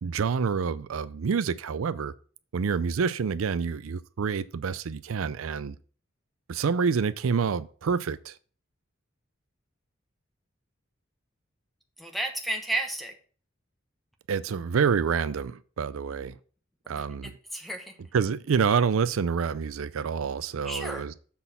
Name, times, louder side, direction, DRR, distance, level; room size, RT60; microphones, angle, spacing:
voice 1, 0.0-2.1 2.5-5.8 6.5-8.4 14.3-16.4 16.9-17.4 18.1-21.1, right 6 dB, 90° right, 0.4 m, -27 dB
voice 2, 12.0-13.1 17.2-18.0 20.6-21.0, right 1 dB, ahead, 1.0 m, -32 dB
7.1 x 4.2 x 5.6 m
head